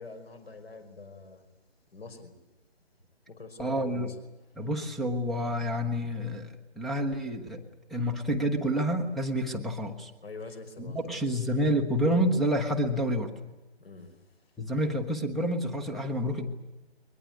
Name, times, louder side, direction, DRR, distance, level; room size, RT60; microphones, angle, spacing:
voice 1, 0.0-1.4 1.9-2.3 3.3-4.2 10.2-11.4 13.8-14.1, left 4 dB, 60° left, 9 dB, 5.4 m, -44 dB
voice 2, 3.6-4.1 4.6-7.6 7.9-10.1 10.8-13.3 14.6-16.5, equal, ahead, 5 dB, 0.8 m, -28 dB
22.5 x 21.0 x 9.6 m, 1.1 s
figure-of-eight pair, 145°, 33 cm